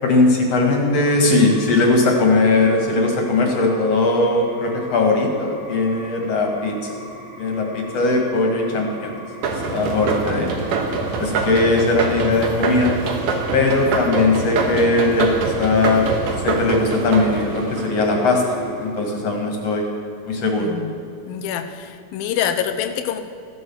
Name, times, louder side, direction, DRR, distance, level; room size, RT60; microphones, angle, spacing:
voice 1, 0.0-6.9 7.4-9.1 9.7-10.5 11.2-12.9 13.5-16.1 16.4-19.9 20.3-20.7, left 2 dB, 50° left, 2 dB, 2.8 m, -19 dB
sound 1, 1.0-19.1, right 2 dB, 25° left, 2.8 m, -37 dB
sound 2, 9.4-18.5, right 4 dB, 65° right, 2.8 m, -25 dB
voice 2, 20.6-20.9 21.3-23.2, left 9 dB, 85° left, 8 dB, 2.7 m, -26 dB
16.0 x 11.0 x 7.2 m, 2.6 s
omnidirectional pair, 4.1 m